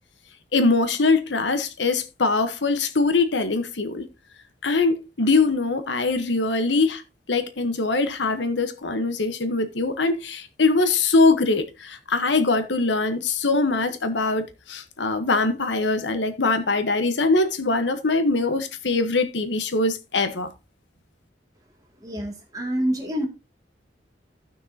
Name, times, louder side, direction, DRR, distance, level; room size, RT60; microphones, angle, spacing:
voice 1, 0.5-4.1 4.6-7.0 7.3-20.5, left 3 dB, 85° left, 1.1 m, -22 dB
voice 2, 22.0-23.3, equal, 20° right, 2.3 m, -27 dB
15.0 x 6.1 x 2.8 m
head